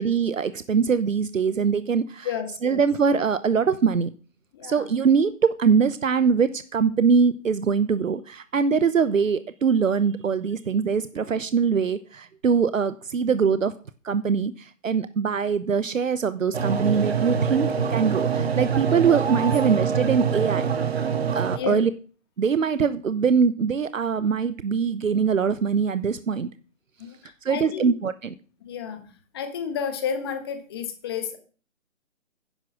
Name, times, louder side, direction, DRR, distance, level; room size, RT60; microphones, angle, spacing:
voice 1, 0.0-2.3 2.6-4.2 4.6-13.7 14.0-20.7 21.3-21.9 22.4-26.5 27.4-28.3, right 6 dB, 75° right, 13 dB, 1.0 m, -23 dB
voice 2, 2.2-2.8 4.5-4.9 21.5-21.8 27.0-27.9 28.6-31.4, left 7 dB, 20° left, 8 dB, 1.3 m, -32 dB
sound 1, 16.5-21.6, right 6 dB, 50° right, 1.7 m, -25 dB
10.5 x 9.7 x 6.3 m, 0.39 s
hypercardioid pair, 160°, 39 cm